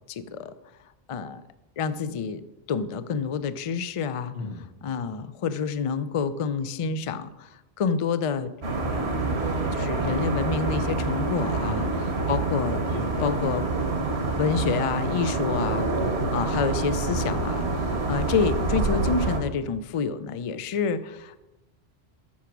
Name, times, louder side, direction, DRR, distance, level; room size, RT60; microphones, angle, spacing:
voice 1, 0.1-0.5 1.1-1.4 1.8-2.4 2.7-4.4 4.8-7.5 7.8-8.5 8.9-9.2 9.7-11.9 12.3-12.8 13.2-13.7 14.4-15.9 16.3-21.4, left 5 dB, 55° left, 13 dB, 0.4 m, -28 dB
voice 2, 4.3-4.7 11.6-12.3 12.9-13.6 15.7-16.2 17.9-18.1, left 2 dB, 80° left, 2 dB, 1.7 m, -38 dB
sound 1, 8.6-19.4, right 3 dB, 75° right, 1.4 m, -27 dB
8.4 x 5.9 x 5.9 m, 1.0 s
omnidirectional pair, 1.1 m